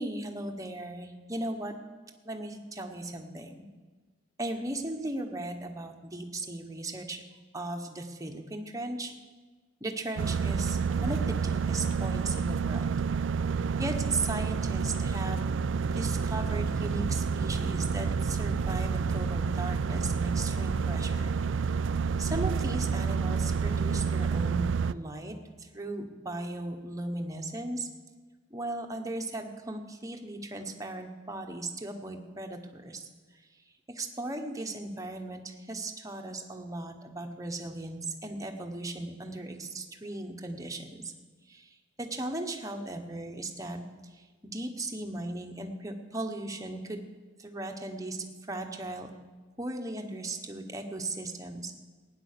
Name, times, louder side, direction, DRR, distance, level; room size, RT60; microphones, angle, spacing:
voice 1, 0.0-1.7 2.2-3.6 4.4-7.2 7.5-9.1 9.8-13.0 13.8-15.5 15.9-21.4 22.2-25.3 25.7-27.9 28.5-33.1 33.9-40.9 41.5-41.6 42.0-43.8 44.4-47.0 47.4-48.2 48.5-49.1 49.6-51.7, right 2 dB, 20° right, 3 dB, 1.3 m, -37 dB
sound 1, 10.2-24.9, right 5 dB, 75° right, 0.4 m, -29 dB
16.0 x 9.8 x 6.8 m, 1.4 s
head